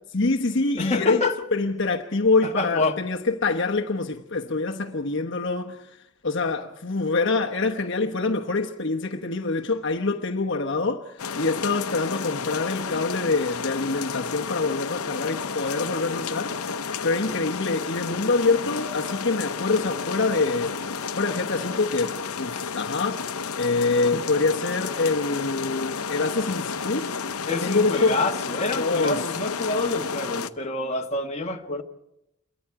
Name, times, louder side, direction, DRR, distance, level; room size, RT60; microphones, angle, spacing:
voice 1, 0.1-1.2 1.5-6.0 6.2-16.8 17.0-20.8 21.1-23.3 23.6-27.1 27.6-28.2 28.8-29.2, left 3 dB, 55° left, 1.0 m, -25 dB
voice 2, 0.8-1.4 2.4-3.0 24.1-24.2 27.5-31.8, left 3 dB, 30° left, 1.5 m, -27 dB
sound 1, 11.2-30.5, left 5 dB, 85° left, 0.8 m, -31 dB
28.0 x 23.0 x 4.8 m
head